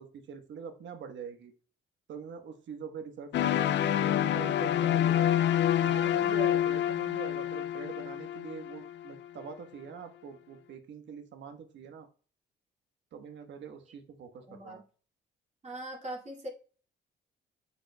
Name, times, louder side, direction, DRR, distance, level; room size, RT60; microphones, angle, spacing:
voice 1, 0.0-1.5 2.1-5.3 5.7-12.1 13.1-14.8, right 6 dB, 65° right, 7 dB, 1.2 m, -44 dB
sound 1, 3.3-9.3, left 11 dB, 65° left, 0.5 m, -27 dB
voice 2, 14.5-14.8 15.6-16.5, right 1 dB, 35° right, -1 dB, 2.3 m, -40 dB
9.0 x 6.6 x 2.2 m, 0.40 s
cardioid pair, 90°, 20 cm